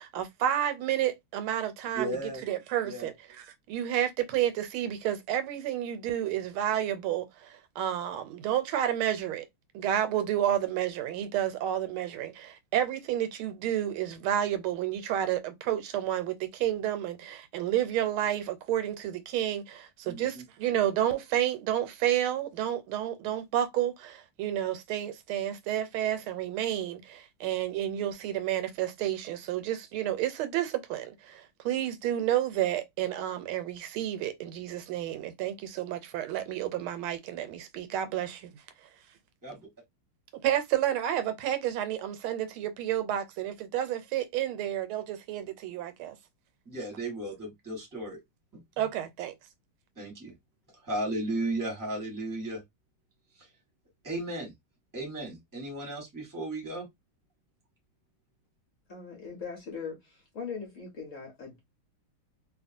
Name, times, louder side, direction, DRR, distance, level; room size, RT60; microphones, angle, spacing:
voice 1, 0.0-2.2 2.4-3.1 3.7-9.4 9.7-38.5 40.4-46.2 48.8-49.3, right 11 dB, 90° right, 1.5 m, -30 dB
voice 2, 1.9-2.4 2.8-3.1 20.0-20.4 39.4-39.7 46.6-48.2 48.5-48.9 50.0-50.3 50.8-52.6 53.4-53.5 54.0-54.5 54.9-56.9, right 1 dB, 10° right, 1.1 m, -35 dB
voice 3, 58.9-61.6, left 5 dB, 50° left, 1.0 m, -40 dB
2.9 x 2.8 x 2.5 m
omnidirectional pair, 2.3 m